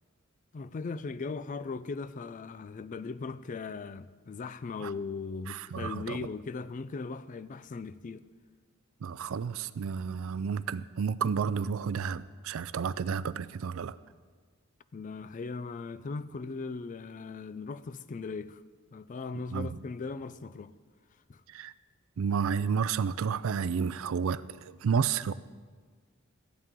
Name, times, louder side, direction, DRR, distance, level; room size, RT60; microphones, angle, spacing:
voice 1, 0.5-8.2 14.9-18.6 18.9-20.7 21.3-21.4, left 4 dB, 35° left, 0.4 m, -38 dB
voice 2, 5.5-6.3 9.0-14.0 19.5-19.7 21.5-21.7 22.2-25.3, right 6 dB, 65° right, 0.4 m, -31 dB
14.5 x 11.0 x 3.7 m
head